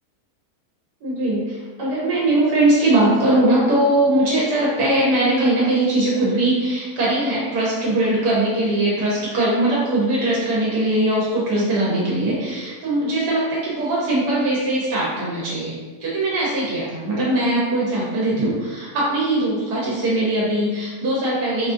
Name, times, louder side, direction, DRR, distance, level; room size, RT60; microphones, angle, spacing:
voice 1, 1.0-21.7, right 1 dB, 80° right, -6 dB, 1.3 m, -20 dB
3.8 x 2.4 x 2.5 m, 1.4 s
omnidirectional pair, 1.7 m